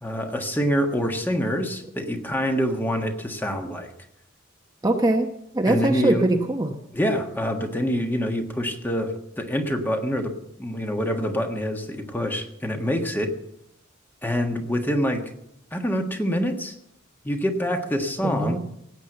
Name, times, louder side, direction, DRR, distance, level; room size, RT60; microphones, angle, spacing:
voice 1, 0.0-3.9 5.7-6.3 6.9-10.3 10.6-13.3 14.2-15.2 15.7-16.7 17.2-18.6, equal, 10° left, 4 dB, 1.5 m, -26 dB
voice 2, 4.8-5.3 5.5-6.8 18.2-18.6, right 1 dB, 20° right, 3 dB, 1.0 m, -22 dB
17.0 x 8.2 x 8.0 m, 0.79 s
head